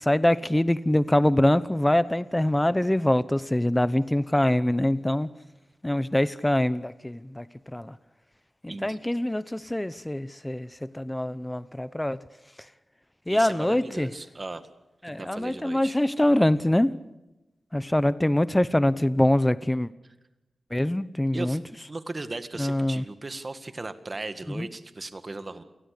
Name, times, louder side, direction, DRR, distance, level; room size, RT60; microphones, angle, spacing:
voice 1, 0.0-5.3 5.8-7.4 7.7-7.9 8.6-10.7 10.9-12.2 13.3-14.1 15.0-16.9 17.7-19.9 20.7-21.6 22.6-23.0 24.6-24.7, left 1 dB, 15° left, 15 dB, 0.8 m, -24 dB
voice 2, 8.7-9.0 13.3-14.6 15.0-16.0 21.3-21.6 21.9-25.6, right 2 dB, 40° right, 10 dB, 1.9 m, -37 dB
28.5 x 19.0 x 6.7 m, 1.0 s
cardioid pair, 65°, 0 cm